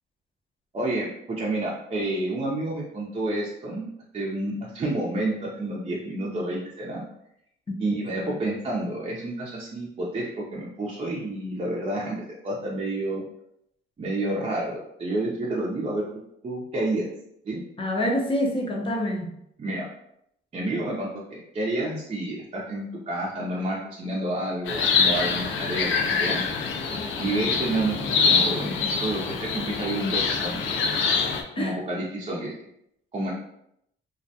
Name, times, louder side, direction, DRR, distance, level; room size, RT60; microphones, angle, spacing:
voice 1, 0.7-3.9 4.1-7.0 7.8-13.2 14.0-16.1 16.4-17.1 17.4-17.6 19.6-19.8 20.5-26.4 27.2-30.6 31.6-32.5 33.1-33.3, right 1 dB, 30° right, -5 dB, 0.5 m, -29 dB
voice 2, 17.8-19.3 31.6-31.8, left 1 dB, 25° left, 0 dB, 0.6 m, -27 dB
sound 1, 24.7-31.4, left 5 dB, 80° left, 0.4 m, -25 dB
2.3 x 2.1 x 2.7 m, 0.76 s
cardioid pair, 90°, 20 cm